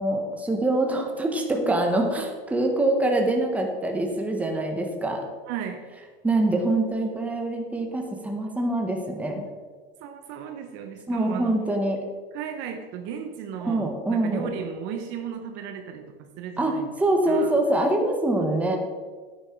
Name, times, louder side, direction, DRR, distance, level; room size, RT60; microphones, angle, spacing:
voice 1, 0.0-5.2 6.2-9.5 11.1-12.0 13.6-14.5 16.6-18.8, right 1 dB, 5° right, 2 dB, 1.3 m, -24 dB
voice 2, 5.5-5.9 10.0-11.6 12.3-16.9 17.3-17.6, right 7 dB, 40° right, 5 dB, 1.1 m, -35 dB
10.5 x 9.7 x 4.6 m, 1.5 s
supercardioid pair, 145°, 30 cm